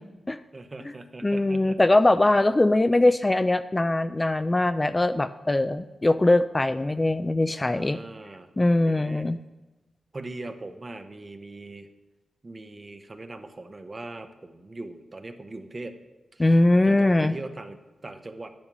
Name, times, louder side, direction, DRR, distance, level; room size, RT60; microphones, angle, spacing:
voice 1, 0.5-1.8 7.6-8.5 8.9-9.3 10.1-11.9 12.4-16.0 16.3-18.5, right 2 dB, 35° right, 7 dB, 0.8 m, -40 dB
voice 2, 1.2-8.0 8.6-9.4 16.4-17.4, left 2 dB, 20° left, 12 dB, 0.3 m, -21 dB
10.5 x 10.0 x 3.0 m, 1.1 s
cardioid pair, 80°, 0 cm